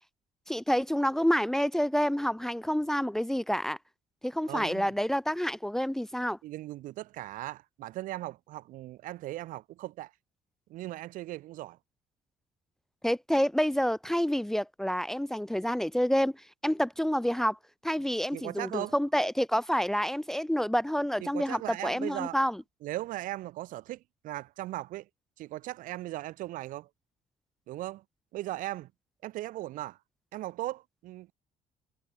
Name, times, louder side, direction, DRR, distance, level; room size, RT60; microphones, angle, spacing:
voice 1, 0.5-3.8 4.2-6.4 13.0-17.6 17.8-22.6, equal, 5° left, 0.8 m, -28 dB
voice 2, 4.5-4.9 6.4-10.1 10.7-11.8 18.3-18.9 21.2-22.4 22.8-25.1 25.4-26.9 27.7-28.0 28.3-28.9 29.2-30.0 30.3-31.3, right 16 dB, 65° right, 1.6 m, -38 dB
cardioid pair, 175°, 14 cm